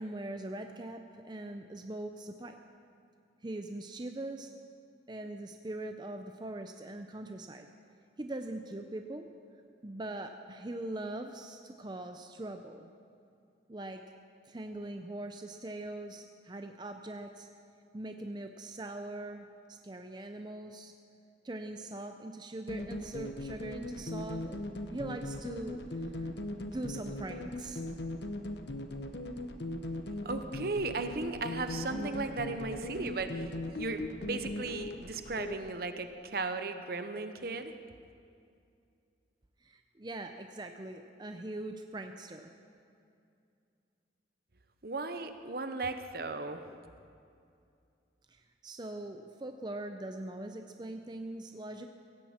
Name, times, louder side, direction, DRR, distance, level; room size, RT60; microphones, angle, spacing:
voice 1, 0.0-2.6 3.4-4.5 5.1-7.7 8.2-9.3 9.8-12.9 13.7-14.0 14.5-17.5 17.9-20.9 21.4-24.6 24.9-26.3 26.6-27.8 39.6-42.5 48.3-51.9, right 1 dB, 25° right, 5 dB, 0.5 m, -42 dB
sound 1, 22.7-35.6, left 1 dB, 70° left, 0.9 m, -39 dB
voice 2, 30.2-37.7 44.8-46.6, right 3 dB, 55° right, 9 dB, 0.8 m, -36 dB
16.5 x 16.0 x 4.4 m, 2.5 s
head